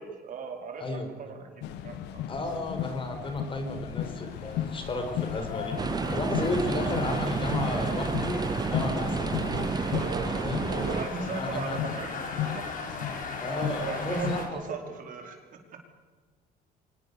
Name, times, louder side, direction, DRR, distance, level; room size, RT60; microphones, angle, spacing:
voice 1, 0.0-2.3 9.9-10.4 10.7-12.7 13.4-15.6, right 5 dB, 55° right, 3 dB, 4.9 m, -37 dB
sound 1, 1.6-14.5, left 11 dB, 85° left, 1.4 m, -36 dB
voice 2, 2.3-9.5 10.2-12.0 13.4-14.6, left 2 dB, 30° left, 7 dB, 4.6 m, -34 dB
sound 2, 3.7-14.5, left 4 dB, 50° left, 5.4 m, -39 dB
sound 3, 5.8-11.1, right 5 dB, 25° right, 0.6 m, -30 dB
24.5 x 20.0 x 7.0 m, 1.5 s
cardioid pair, 110°, 17 cm